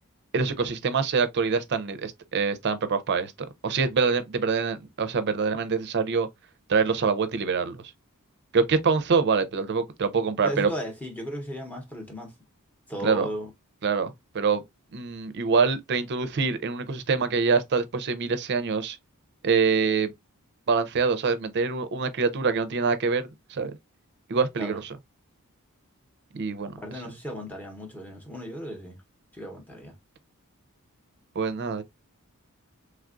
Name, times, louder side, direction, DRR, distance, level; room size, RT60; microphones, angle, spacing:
voice 1, 0.3-6.3 6.7-7.8 8.5-10.7 13.0-13.3 13.8-14.6 14.9-19.0 19.4-20.1 20.7-23.8 24.3-24.9 26.3-27.0 31.4-31.8, right 5 dB, 50° right, 0.5 m, -25 dB
voice 2, 10.4-12.3 12.9-13.5 24.6-24.8 26.8-29.0 29.3-29.9, equal, 5° left, 0.8 m, -35 dB
3.3 x 2.3 x 2.4 m
head